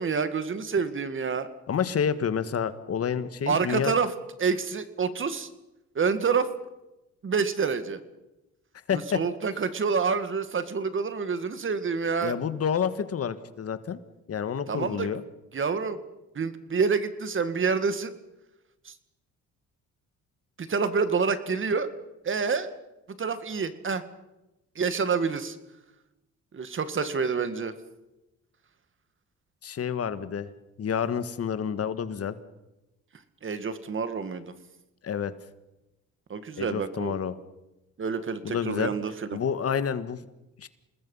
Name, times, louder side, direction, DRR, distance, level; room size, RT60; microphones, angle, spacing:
voice 1, 0.0-1.5 3.5-4.1 4.4-5.5 6.0-6.5 7.2-8.0 8.9-12.3 14.7-15.1 15.5-16.0 16.4-18.1 18.8-18.9 20.6-21.9 22.2-22.7 23.2-24.0 24.8-25.6 26.5-27.7 33.4-34.5 36.3-37.2 38.0-39.4, right 5 dB, 40° right, 12 dB, 2.0 m, -27 dB
voice 2, 1.7-3.9 8.9-9.2 12.2-14.0 14.3-15.2 29.6-30.5 30.8-32.3 35.0-35.3 36.6-37.4 38.4-38.9 39.3-40.2 40.6-40.7, left 7 dB, 50° left, 12 dB, 1.6 m, -29 dB
28.5 x 20.0 x 5.6 m, 0.97 s
cardioid pair, 90°, 30 cm